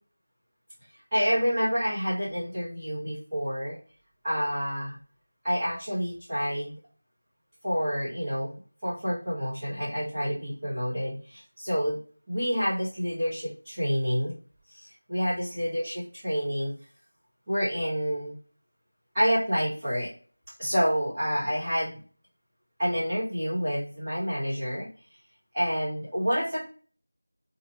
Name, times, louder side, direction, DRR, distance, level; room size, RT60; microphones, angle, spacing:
voice 1, 1.1-3.8 4.2-5.0 5.4-6.7 7.6-8.5 8.8-12.0 12.3-14.3 14.7-16.7 17.5-18.3 19.1-20.1 20.6-22.0 22.8-24.9 25.5-26.7, equal, 5° right, -17 dB, 1.1 m, -28 dB
2.8 x 2.4 x 2.7 m, 0.40 s
figure-of-eight pair, 180°, 0 cm